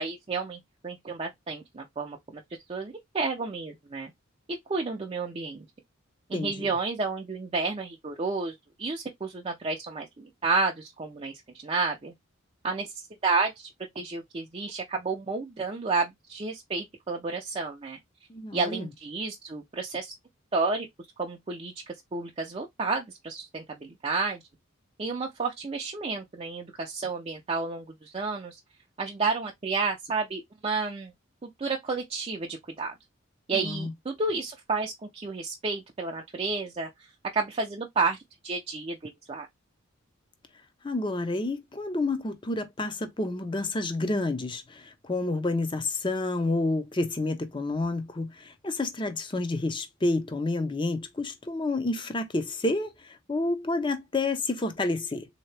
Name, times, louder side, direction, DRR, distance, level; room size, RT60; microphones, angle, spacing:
voice 1, 0.0-2.4 2.7-4.1 4.7-5.7 6.3-8.5 8.8-11.3 11.6-12.1 12.6-12.9 13.2-13.7 14.0-18.0 18.5-20.1 20.5-20.9 21.2-24.4 25.0-28.6 29.0-31.1 31.4-32.9 33.5-36.9 37.3-38.2 38.4-39.5, right 4 dB, 30° right, 0.5 m, -31 dB
voice 2, 6.3-6.7 18.3-18.9 33.5-33.9 40.8-55.3, left 2 dB, 25° left, 0.6 m, -29 dB
3.6 x 2.8 x 3.2 m
head